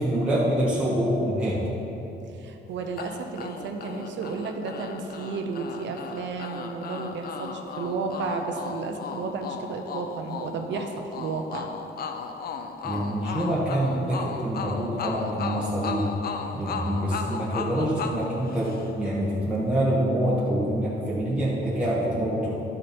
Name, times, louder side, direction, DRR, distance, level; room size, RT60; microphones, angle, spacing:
voice 1, 0.0-1.6 12.8-16.1 16.5-22.5, right 1 dB, 5° right, -9 dB, 1.4 m, -26 dB
voice 2, 2.4-11.7, right 4 dB, 85° right, 4 dB, 0.8 m, -32 dB
sound 1, 3.0-19.2, left 5 dB, 55° left, 0.6 m, -36 dB
12.5 x 6.4 x 4.5 m, 2.9 s
wide cardioid pair, 160°, 19 cm